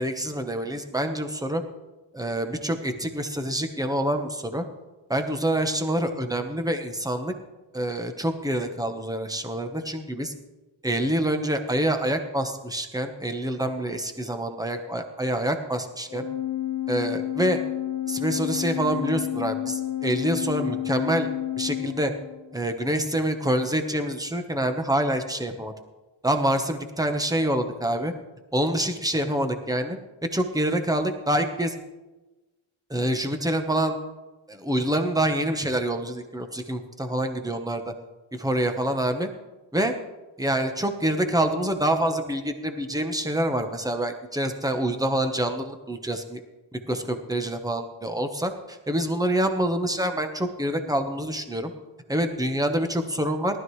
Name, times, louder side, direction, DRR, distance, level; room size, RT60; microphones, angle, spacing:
voice 1, 0.0-1.6 2.1-4.6 5.1-7.3 7.7-10.3 10.8-16.3 16.9-17.6 18.1-21.3 21.6-22.1 22.5-25.7 26.2-28.1 28.5-30.0 30.3-31.7 32.9-34.0 34.5-37.9 38.3-39.3 39.7-39.9 40.4-46.4 46.9-51.7 52.1-53.6, right 1 dB, 10° right, 6 dB, 1.1 m, -26 dB
Organ, 16.1-22.6, left 13 dB, 50° left, 1.1 m, -30 dB
18.5 x 12.5 x 3.2 m, 1.1 s
wide cardioid pair, 120°, 48 cm